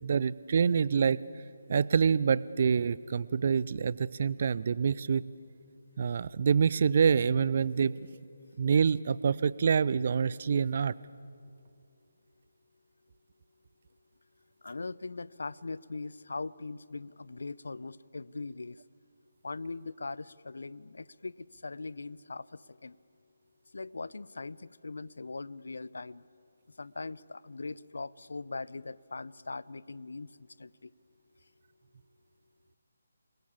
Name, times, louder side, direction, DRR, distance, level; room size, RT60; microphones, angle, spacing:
voice 1, 0.0-1.2 1.7-5.2 6.0-8.0 8.6-10.9, right 6 dB, 45° right, 20 dB, 0.5 m, -26 dB
voice 2, 14.6-18.8 19.4-23.0 23.7-26.3 26.8-30.9, left 3 dB, 65° left, 20 dB, 0.6 m, -41 dB
29.0 x 20.0 x 8.6 m, 2.4 s
figure-of-eight pair, 150°, 0 cm